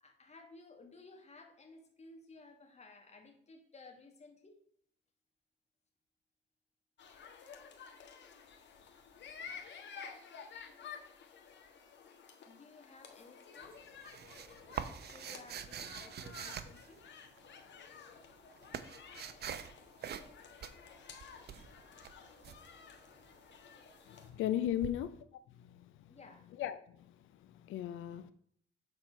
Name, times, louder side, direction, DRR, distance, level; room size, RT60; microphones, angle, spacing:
voice 1, 0.0-4.6 12.5-13.9 14.9-17.1 22.2-22.3 26.1-26.5, left 3 dB, 35° left, 1.9 m, -57 dB
sound 1, 7.0-24.3, left 6 dB, 65° left, 1.4 m, -53 dB
sound 2, 13.6-17.4 18.2-19.7 20.0-20.3 20.6-22.6 24.8-24.9, right 8 dB, 55° right, 0.7 m, -44 dB
voice 2, 24.1-26.1 26.6-28.3, left 11 dB, 80° left, 0.6 m, -38 dB
7.9 x 4.4 x 5.3 m
cardioid pair, 90°, 20 cm